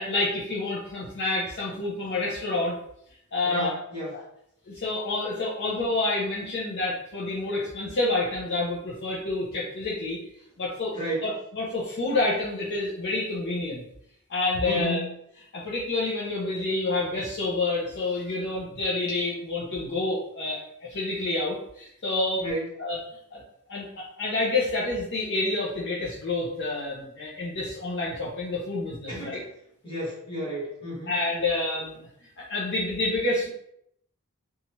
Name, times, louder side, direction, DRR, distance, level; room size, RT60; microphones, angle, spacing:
voice 1, 0.0-2.8 3.3-3.7 4.1-4.2 4.7-10.2 10.6-10.9 11.2-13.8 14.3-15.0 15.5-22.4 22.8-23.0 23.3-23.4 23.7-29.4 31.1-33.5, left 2 dB, 50° left, -5 dB, 0.5 m, -28 dB
voice 2, 3.4-4.2 10.9-11.3 14.6-15.1 22.4-22.7 29.1-29.4 29.8-31.1, equal, 25° left, -7 dB, 1.4 m, -32 dB
2.7 x 2.3 x 2.9 m, 0.74 s
head